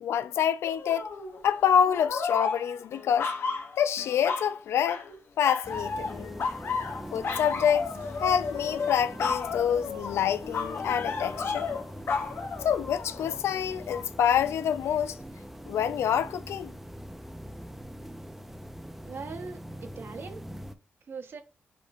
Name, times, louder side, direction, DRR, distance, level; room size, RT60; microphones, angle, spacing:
voice 1, 0.0-1.1 1.4-3.3 3.8-5.0 5.4-6.3 7.1-11.7 12.6-15.2 15.7-16.7, left 8 dB, 90° left, 0.3 m, -27 dB
sound 1, 0.6-1.4 1.8-4.5 4.8-5.2 5.4-13.4 13.9-14.0, left 5 dB, 60° left, 0.8 m, -33 dB
sound 2, 5.6-20.7, equal, 5° right, 0.5 m, -43 dB
voice 2, 19.1-20.4 21.1-21.4, right 4 dB, 60° right, 0.9 m, -40 dB
6.7 x 3.1 x 2.4 m
cardioid pair, 85°, 4 cm